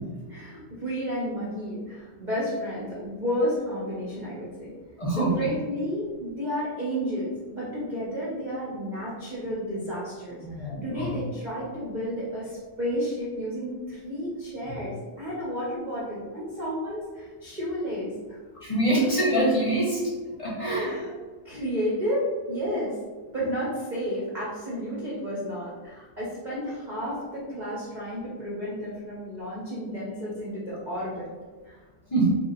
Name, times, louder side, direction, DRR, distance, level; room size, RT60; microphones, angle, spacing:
voice 1, 0.3-4.7 5.2-18.4 20.7-21.2 21.4-23.0 23.3-31.3 31.6-31.8, equal, 35° right, -7 dB, 0.8 m, -32 dB
voice 2, 5.0-5.3 10.4-11.1 18.6-20.0 20.4-20.9 32.1-32.3, right 1 dB, 25° left, -6 dB, 0.8 m, -24 dB
3.5 x 2.4 x 4.0 m, 1.4 s
omnidirectional pair, 1.8 m